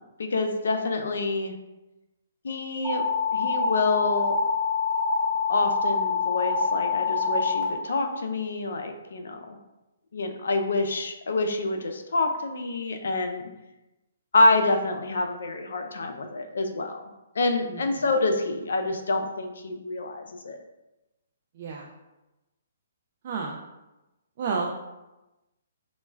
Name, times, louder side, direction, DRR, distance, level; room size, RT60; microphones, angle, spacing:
voice 1, 0.2-1.5 2.4-3.0 3.3-4.4 5.5-9.6 10.1-13.5 14.3-17.1 17.4-20.6, left 2 dB, 75° left, 6 dB, 0.3 m, -27 dB
sound 1, 2.8-7.6, left 4 dB, 30° right, 0.9 m, -25 dB
voice 2, 21.6-21.9 23.2-23.6 24.4-24.7, right 4 dB, 50° right, -1 dB, 0.3 m, -30 dB
2.2 x 2.1 x 3.2 m, 1.0 s
hypercardioid pair, 145°, 0 cm